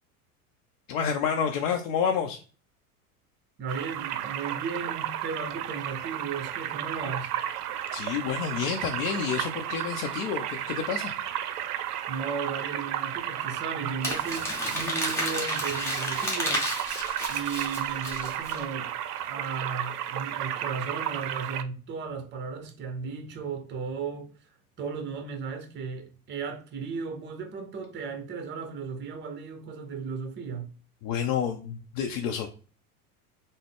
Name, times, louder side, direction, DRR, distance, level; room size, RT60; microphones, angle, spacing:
voice 1, 0.9-2.4 7.9-11.1 31.0-32.5, left 7 dB, 60° left, 0.6 m, -29 dB
voice 2, 3.6-7.3 12.1-16.7 17.3-18.9 19.3-24.3 24.8-30.7, right 5 dB, 25° right, 0.7 m, -35 dB
sound 1, 3.7-21.6, right 11 dB, 75° right, 0.5 m, -33 dB
Crumpling crinkling, 14.0-18.6, left 1 dB, 5° left, 1.1 m, -32 dB
3.6 x 2.1 x 3.4 m
hypercardioid pair, 90°, 46 cm